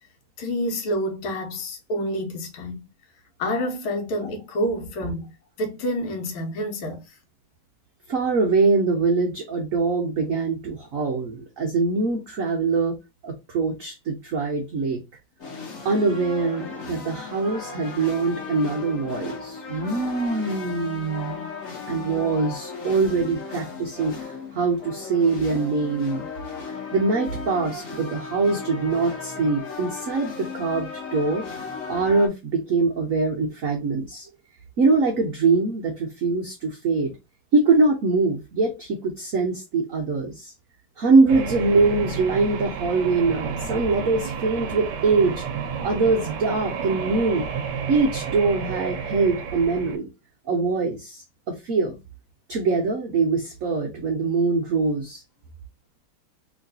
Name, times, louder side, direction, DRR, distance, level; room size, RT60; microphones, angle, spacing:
voice 1, 0.4-2.8 3.4-5.3 5.6-7.1, equal, 90° left, 1.7 m, -28 dB
voice 2, 8.1-13.0 13.2-15.0 15.8-21.5 21.8-26.3 26.9-34.3 34.8-37.1 37.5-40.5 41.0-45.4 45.8-47.5 47.9-50.1 50.5-51.9 52.5-55.2, right 3 dB, 85° right, 0.7 m, -23 dB
sound 1, 15.4-32.3, left 5 dB, 50° left, 1.0 m, -36 dB
sound 2, 41.3-50.0, right 6 dB, 70° right, 1.0 m, -31 dB
3.2 x 3.0 x 2.6 m
omnidirectional pair, 2.3 m